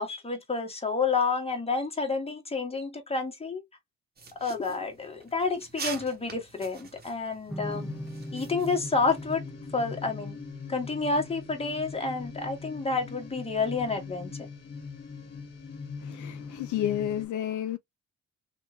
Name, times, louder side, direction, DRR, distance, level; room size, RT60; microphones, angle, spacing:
voice 1, 0.0-3.6 4.4-7.9 8.3-9.4 9.7-10.4 10.7-14.3, left 4 dB, 20° left, 1.4 m, -29 dB
sound 1, 4.2-9.4, right 4 dB, 30° right, 1.1 m, -44 dB
sound 2, 7.5-14.7, right 1 dB, ahead, 0.6 m, -44 dB
sound 3, 7.6-17.3, left 5 dB, 35° left, 1.8 m, -41 dB
voice 2, 16.0-17.8, left 11 dB, 75° left, 0.5 m, -31 dB
3.0 x 2.5 x 3.0 m
cardioid pair, 90°, 30 cm